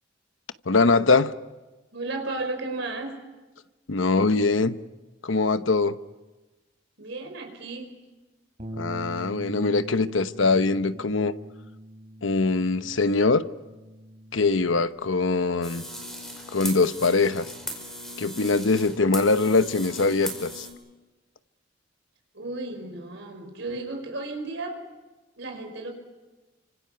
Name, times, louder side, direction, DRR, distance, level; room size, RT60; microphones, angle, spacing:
voice 1, 0.7-1.3 3.9-4.7 5.2-6.0 8.8-11.3 12.2-13.4 14.3-15.8 16.5-17.5 18.2-20.7, left 3 dB, 90° left, 11 dB, 1.0 m, -22 dB
voice 2, 1.9-3.2 7.0-8.0 22.3-24.8 25.4-25.9, right 2 dB, 70° right, 4 dB, 5.6 m, -34 dB
Bass guitar, 8.6-14.8, right 1 dB, 40° right, 4.3 m, -42 dB
sound 1, 15.6-20.7, equal, 5° left, 5.4 m, -38 dB
29.5 x 26.0 x 5.8 m, 1.2 s
head